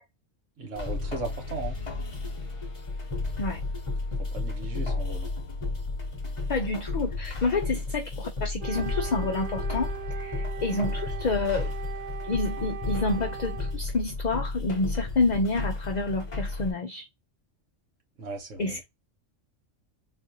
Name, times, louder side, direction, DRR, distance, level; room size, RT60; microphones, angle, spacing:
voice 1, 0.6-1.8 4.3-5.3 18.2-18.8, right 3 dB, 75° right, 1.5 m, -37 dB
sound 1, 0.8-16.7, left 3 dB, 25° left, 0.9 m, -33 dB
voice 2, 6.5-11.7 12.2-17.1 18.6-18.8, left 3 dB, 50° left, 0.6 m, -28 dB
Wind instrument woodwind instrument, 8.6-13.8, right 9 dB, 60° right, 0.5 m, -40 dB
4.1 x 2.4 x 2.7 m
omnidirectional pair, 1.3 m